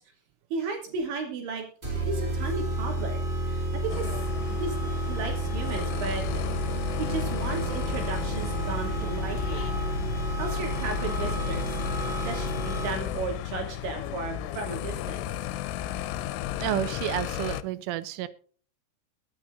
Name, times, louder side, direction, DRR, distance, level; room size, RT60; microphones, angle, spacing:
voice 1, 0.5-1.7 1.9-4.1 4.5-6.4 7.0-9.7 10.4-11.8 12.2-15.3, right 4 dB, 70° right, 1 dB, 5.0 m, -35 dB
sound 1, 1.8-13.2, right 2 dB, 35° right, 0.8 m, -31 dB
sound 2, 3.9-17.6, left 11 dB, 85° left, 3.2 m, -34 dB
Human voice / Bird, 5.7-13.3, left 8 dB, 60° left, 2.6 m, -48 dB
voice 2, 16.6-18.3, right 13 dB, 90° right, 14 dB, 3.3 m, -30 dB
22.5 x 9.3 x 2.6 m, 0.43 s
omnidirectional pair, 5.6 m